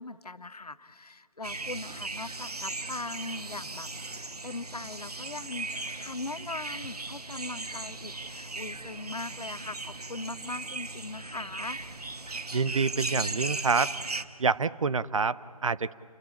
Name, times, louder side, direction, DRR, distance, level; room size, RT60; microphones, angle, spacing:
voice 1, 0.0-5.7 6.0-11.8, left 3 dB, 90° left, 15 dB, 1.0 m, -40 dB
sound 1, 1.4-14.2, right 3 dB, 85° right, 1.3 m, -38 dB
voice 2, 12.5-13.9 14.4-15.9, right 5 dB, 60° right, 17 dB, 0.7 m, -27 dB
29.0 x 16.0 x 8.7 m, 2.4 s
figure-of-eight pair, 155°, 19 cm